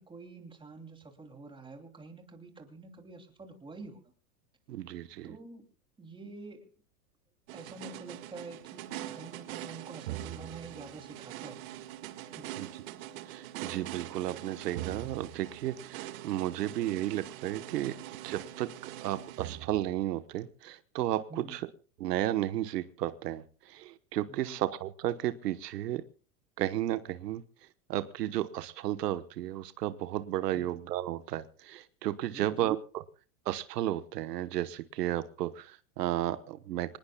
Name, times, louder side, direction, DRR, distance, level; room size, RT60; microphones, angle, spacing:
voice 1, 0.0-4.0 5.2-5.7 6.0-6.7 7.5-11.6 12.2-12.5 21.3-21.6 24.3-24.6 32.3-32.7, right 3 dB, 10° right, 5 dB, 2.9 m, -47 dB
voice 2, 4.7-5.4 12.6-12.7 13.3-18.0 18.2-18.7 19.0-21.3 21.5-21.6 22.0-26.0 26.6-27.4 27.9-33.0 33.4-37.0, right 13 dB, 80° right, 12 dB, 1.3 m, -33 dB
sound 1, 7.5-20.2, right 14 dB, 60° right, 2.0 m, -43 dB
26.0 x 19.5 x 2.3 m, 0.38 s
supercardioid pair, 135°, 47 cm